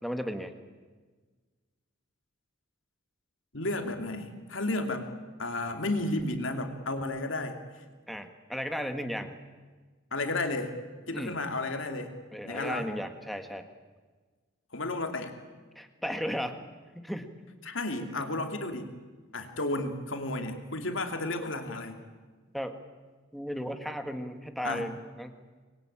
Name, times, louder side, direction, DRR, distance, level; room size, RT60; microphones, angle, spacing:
voice 1, 0.0-0.5 8.1-9.3 11.1-11.3 12.3-13.7 15.7-16.6 16.9-17.3 18.1-18.3 22.5-22.8 23.3-25.3, equal, ahead, 6 dB, 1.7 m, -35 dB
voice 2, 3.5-5.1 5.4-7.6 10.1-10.7 11.1-12.1 12.4-12.9 14.7-15.3 17.6-18.9 19.3-22.0 24.6-24.9, left 2 dB, 70° left, 5 dB, 2.9 m, -32 dB
25.5 x 21.5 x 8.8 m, 1.4 s
head